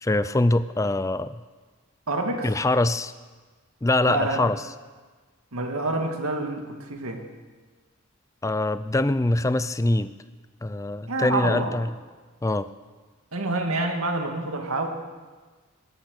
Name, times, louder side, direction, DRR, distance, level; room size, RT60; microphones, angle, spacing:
voice 1, 0.0-1.4 2.4-3.1 3.8-4.6 8.4-10.1 10.6-11.9 12.4-12.7, left 2 dB, 15° left, 14 dB, 0.4 m, -23 dB
voice 2, 2.1-2.5 4.1-4.4 5.5-7.2 11.1-11.7 13.3-14.9, right 2 dB, 80° right, 4 dB, 2.1 m, -27 dB
18.0 x 12.0 x 6.6 m, 1.4 s
head